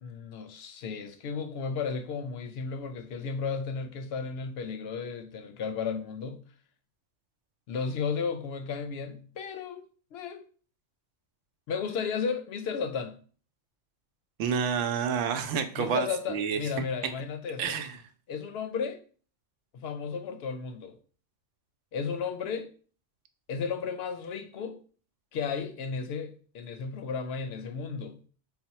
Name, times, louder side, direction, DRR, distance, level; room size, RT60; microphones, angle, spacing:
voice 1, 0.0-6.4 7.7-10.5 11.7-13.2 15.8-17.8 18.3-19.0 19.7-21.0 21.9-22.7 23.5-24.8 25.3-28.2, left 5 dB, 65° left, 0.7 m, -34 dB
voice 2, 14.4-16.6 17.6-18.0, right 7 dB, 80° right, 0.9 m, -29 dB
4.2 x 2.1 x 4.1 m
omnidirectional pair, 1.3 m